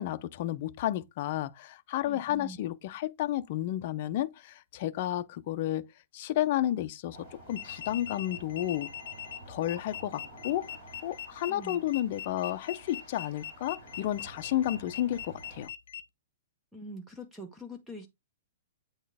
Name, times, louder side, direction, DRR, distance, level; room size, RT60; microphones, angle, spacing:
voice 1, 0.0-5.9 6.1-8.9 9.5-10.7 11.0-15.7, left 13 dB, 40° left, 0.5 m, -32 dB
voice 2, 2.0-2.6 11.5-11.8 16.7-18.1, equal, 5° right, 0.7 m, -44 dB
sound 1, 7.1-15.7, right 1 dB, 25° right, 4.5 m, -50 dB
sound 2, 7.5-16.0, left 10 dB, 70° left, 0.8 m, -42 dB
8.4 x 4.3 x 3.4 m
hypercardioid pair, 170°, 0 cm